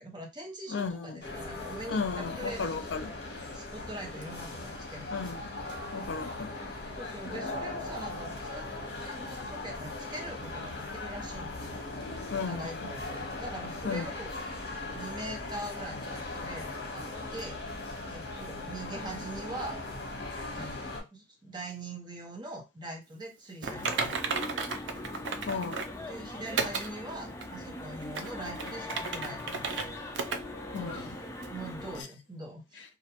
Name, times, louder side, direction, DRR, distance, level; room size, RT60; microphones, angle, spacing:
voice 1, 0.0-5.8 6.9-11.8 12.4-14.4 14.9-17.1 17.3-17.6 18.1-19.8 20.5-24.2 26.1-30.0 30.7-31.1 31.5-33.0, right 1 dB, 25° right, 0.6 m, -43 dB
voice 2, 0.7-1.2 1.9-3.1 5.1-5.6 5.9-6.5 12.3-12.9 13.8-14.1 25.1-25.9 30.7-31.1 32.8-32.9, left 5 dB, 85° left, 0.5 m, -35 dB
sound 1, 1.2-21.0, left 2 dB, 60° left, 0.9 m, -39 dB
sound 2, 23.6-32.0, left 1 dB, 15° left, 0.3 m, -41 dB
Typing, 23.6-26.0 26.6-26.9 27.4-27.5 28.0-29.9 30.1-30.4 30.8-30.9 31.4-31.5, right 4 dB, 80° right, 0.4 m, -33 dB
2.4 x 2.1 x 2.8 m
head